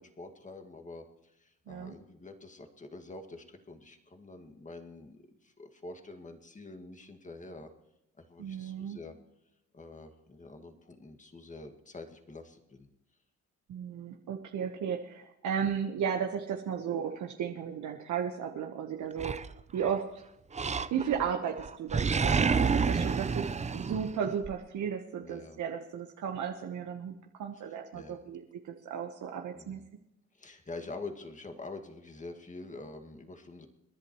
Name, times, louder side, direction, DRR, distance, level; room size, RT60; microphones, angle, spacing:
voice 1, 0.0-7.7 8.2-9.2 9.7-12.9 23.1-23.6 25.2-25.6 27.5-28.2 29.5-29.8 30.3-33.7, left 3 dB, 25° left, 5 dB, 2.0 m, -46 dB
voice 2, 8.4-9.0 13.7-19.4 19.7-20.0 20.9-29.8, right 7 dB, 70° right, 3 dB, 1.3 m, -35 dB
Animal, 19.2-20.0 20.5-21.3 21.6-24.5, right 5 dB, 25° right, 0.6 m, -29 dB
28.5 x 11.0 x 3.1 m, 0.85 s
cardioid pair, 90°, 30 cm